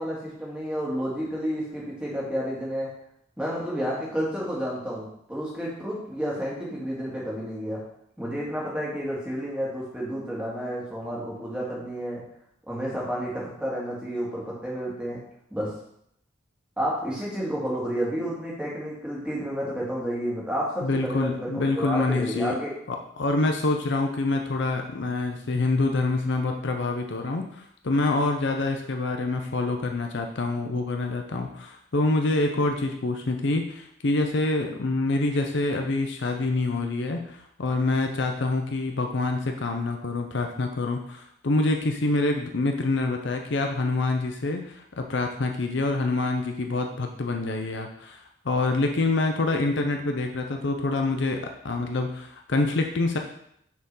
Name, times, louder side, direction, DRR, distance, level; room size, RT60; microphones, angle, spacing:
voice 1, 0.0-2.9 3.4-7.8 8.2-12.2 12.7-15.2 15.5-15.7 16.8-22.7, equal, 5° right, -5 dB, 2.0 m, -30 dB
voice 2, 20.8-22.6 22.9-53.2, left 2 dB, 55° left, 4 dB, 0.6 m, -26 dB
6.4 x 4.5 x 5.5 m, 0.72 s
head